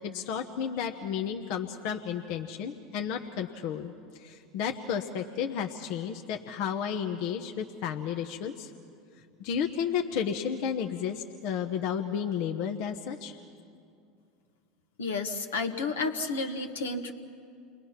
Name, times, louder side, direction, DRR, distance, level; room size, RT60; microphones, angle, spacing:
voice 1, 0.0-8.7 9.4-13.3, left 8 dB, 60° left, 4 dB, 1.1 m, -32 dB
voice 2, 15.0-17.1, left 3 dB, 85° left, 4 dB, 1.5 m, -31 dB
29.0 x 21.5 x 5.9 m, 2.4 s
hypercardioid pair, 85°, 0 cm